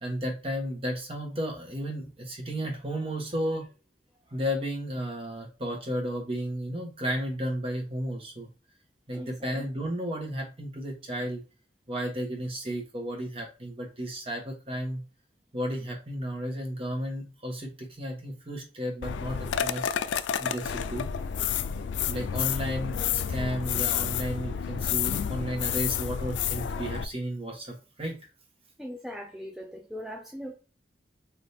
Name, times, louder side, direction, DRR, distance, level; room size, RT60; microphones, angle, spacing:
voice 1, 0.0-3.7 4.3-8.5 9.1-11.4 11.9-15.0 15.5-19.9 20.4-21.1 22.0-28.2, equal, 35° right, 1.2 m, -33 dB
sound 1, 19.0-27.0, left 8 dB, 85° left, 0.3 m, -30 dB
voice 2, 28.8-30.5, equal, ahead, 0.6 m, -39 dB
3.4 x 2.7 x 4.2 m
head